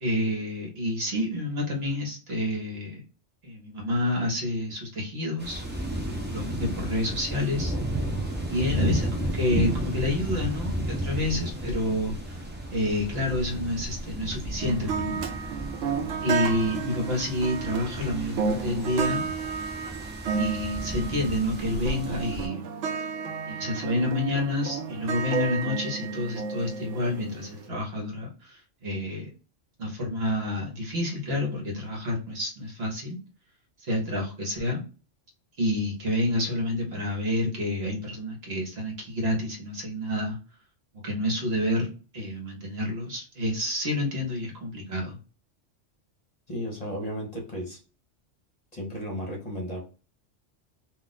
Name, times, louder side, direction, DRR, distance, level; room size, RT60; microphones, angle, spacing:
voice 1, 0.0-3.0 3.4-5.6 5.9-8.0 8.5-12.4 12.7-15.2 16.2-19.3 20.3-22.7 23.5-29.3 29.8-33.2 33.8-34.8 35.6-40.4 41.0-45.2, left 1 dB, 55° right, 0 dB, 1.1 m, -29 dB
sound 1, 5.4-22.5, right 1 dB, 15° right, 0.3 m, -33 dB
sound 2, 14.6-27.6, right 6 dB, 80° right, 0.9 m, -32 dB
voice 2, 46.5-47.8 48.7-49.8, equal, 35° left, -2 dB, 0.9 m, -34 dB
2.4 x 2.3 x 3.9 m, 0.35 s
omnidirectional pair, 1.2 m